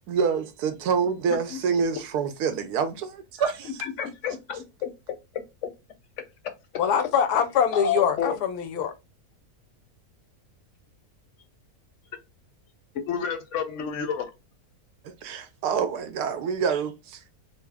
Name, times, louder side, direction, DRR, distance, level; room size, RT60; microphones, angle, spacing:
voice 1, 0.1-3.7 15.0-17.4, right 6 dB, 80° right, 1.2 m, -27 dB
voice 2, 3.8-4.9 5.3-5.7 7.7-8.4 13.1-14.3, left 6 dB, 65° left, 0.8 m, -30 dB
voice 3, 6.8-8.9, left 8 dB, 90° left, 1.2 m, -23 dB
4.1 x 2.0 x 3.4 m
omnidirectional pair, 1.6 m